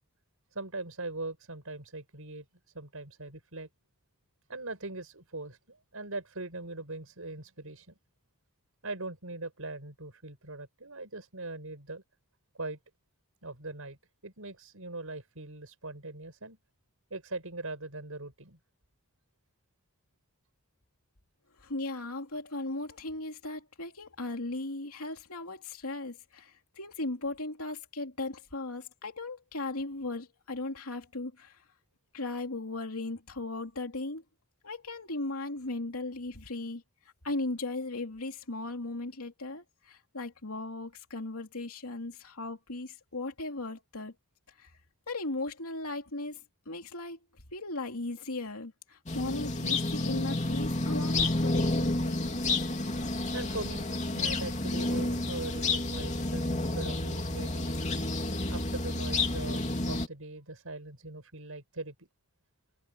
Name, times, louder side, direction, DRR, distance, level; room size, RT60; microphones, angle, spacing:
voice 1, 0.5-2.5 2.7-3.7 4.5-8.0 8.8-12.0 12.5-12.8 13.4-14.0 14.2-16.6 17.1-18.6 53.3-53.9 54.1-57.7 58.5-62.1, right 2 dB, 75° right, 5.2 m, -41 dB
voice 2, 21.6-31.6 32.1-34.2 34.6-36.8 37.2-44.1 44.6-44.7 45.1-46.4 46.7-47.2 47.5-52.4, left 2 dB, 85° left, 2.9 m, -37 dB
sound 1, 49.1-60.1, left 2 dB, 30° left, 3.0 m, -30 dB
head